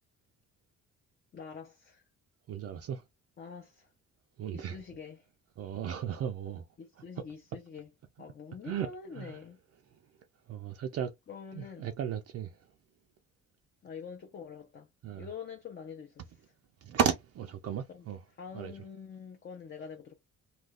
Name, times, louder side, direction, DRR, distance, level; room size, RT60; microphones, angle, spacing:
voice 1, 1.3-2.0 3.4-3.9 4.5-5.3 6.8-7.9 8.2-9.6 11.3-11.9 13.8-14.9 15.2-16.3 17.9-18.0 18.4-20.1, left 6 dB, 35° left, 0.6 m, -45 dB
voice 2, 2.5-3.0 4.4-4.8 5.6-6.6 8.6-8.9 9.1-9.4 10.5-11.1 11.5-12.6 15.0-15.3 16.8-18.2 18.5-18.7, right 8 dB, 55° right, 0.4 m, -34 dB
2.5 x 2.3 x 3.5 m
cardioid pair, 90°, 30 cm